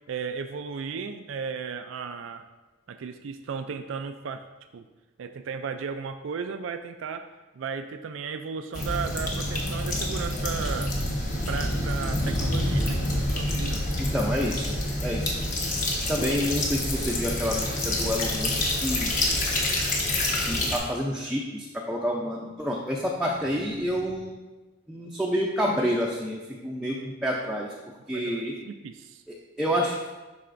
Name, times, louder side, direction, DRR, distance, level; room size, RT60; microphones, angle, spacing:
voice 1, 0.1-2.5 2.9-4.4 4.7-4.9 5.2-7.3 7.5-10.9 11.5-13.9 28.1-29.2, right 6 dB, 85° right, 7 dB, 0.4 m, -35 dB
sound 1, 8.7-20.8, left 1 dB, 40° left, 1.1 m, -27 dB
sound 2, 12.9-13.6 14.5-15.4 16.2-21.1 22.5-24.2, equal, 80° left, 1.4 m, -48 dB
voice 2, 14.0-14.7 15.0-15.4 16.1-19.1 20.5-24.4 24.9-27.7 28.1-28.5 29.3-29.9, equal, 5° right, -3 dB, 0.5 m, -28 dB
11.0 x 4.2 x 2.5 m, 1.2 s
head